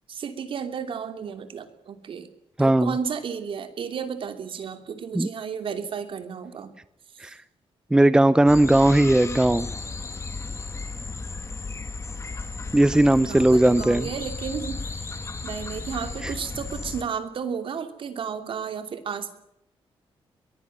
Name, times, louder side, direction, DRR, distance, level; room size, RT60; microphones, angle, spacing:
voice 1, 0.1-2.3 2.6-6.7 7.1-7.3 12.9-15.1 15.4-19.3, right 7 dB, 60° right, 8 dB, 2.9 m, -33 dB
voice 2, 2.6-2.9 5.1-5.3 7.2-7.4 7.9-9.7 12.7-14.1, right 1 dB, 10° right, 15 dB, 0.7 m, -18 dB
sound 1, 8.5-17.0, left 3 dB, 30° left, 2.4 m, -34 dB
22.5 x 15.0 x 9.1 m, 0.77 s
cardioid pair, 110°, 10 cm